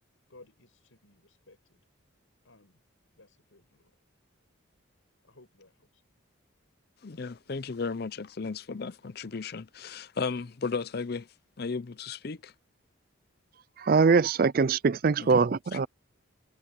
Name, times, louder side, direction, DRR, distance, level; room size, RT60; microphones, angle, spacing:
voice 1, 0.3-1.8 2.4-2.8 3.2-3.9 5.2-6.0, left 2 dB, 80° left, 5.4 m, -58 dB
voice 2, 7.0-11.3 11.6-12.5 15.2-15.3, left 4 dB, 50° left, 0.6 m, -35 dB
voice 3, 13.8-15.9, right 5 dB, 45° right, 0.4 m, -23 dB
head